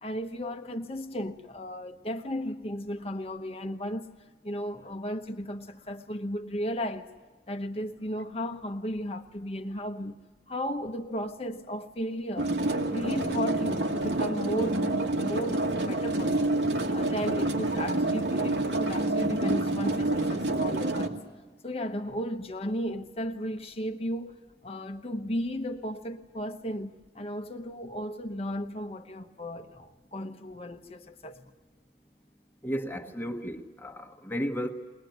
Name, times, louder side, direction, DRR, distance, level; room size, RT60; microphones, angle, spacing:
voice 1, 0.0-4.1 4.4-7.1 7.5-10.2 10.5-12.6 12.9-16.5 16.9-21.2 21.6-24.3 24.6-31.5, equal, 35° left, 1.0 m, -35 dB
sound 1, 12.4-21.1, right 2 dB, 80° right, 2.0 m, -28 dB
voice 2, 32.6-34.7, equal, 10° left, 1.3 m, -33 dB
21.5 x 20.5 x 9.3 m
head